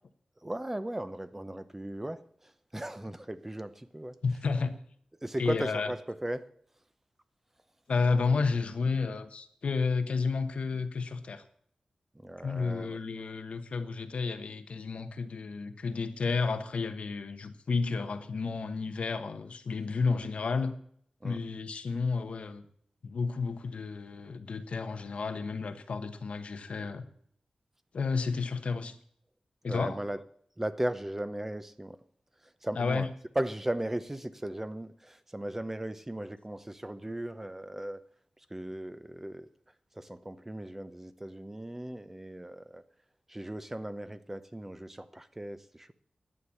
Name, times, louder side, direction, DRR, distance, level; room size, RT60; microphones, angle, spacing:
voice 1, 0.4-2.2 2.7-4.2 5.2-6.5 12.1-13.0 21.2-21.4 29.7-30.2 30.6-32.0 32.6-33.1 33.4-38.0 38.5-39.5 40.0-42.8 43.3-45.9, right 1 dB, 15° right, 0.7 m, -37 dB
voice 2, 4.2-4.8 5.4-5.9 7.9-11.4 12.4-20.8 21.2-22.6 23.0-27.0 27.9-28.9 29.6-30.0 32.7-33.1, left 4 dB, 75° left, 1.1 m, -31 dB
11.0 x 8.2 x 7.1 m
wide cardioid pair, 90°, 2 cm